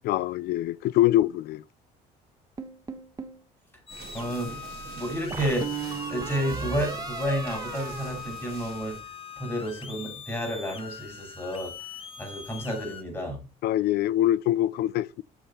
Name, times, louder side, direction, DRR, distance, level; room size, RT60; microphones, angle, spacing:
voice 1, 0.1-1.6 13.6-15.2, left 14 dB, 70° left, 0.4 m, -24 dB
sound 1, 2.6-3.4 5.3-8.9, right 5 dB, 20° right, 1.1 m, -36 dB
sound 2, 3.9-13.0, left 6 dB, 35° left, 1.3 m, -42 dB
sound 3, 3.9-9.0, right 5 dB, 65° right, 2.4 m, -45 dB
voice 2, 4.1-9.0 9.4-11.7 12.2-13.4, equal, 15° left, 5.8 m, -31 dB
7.3 x 7.0 x 4.3 m
cardioid pair, 110°, 17 cm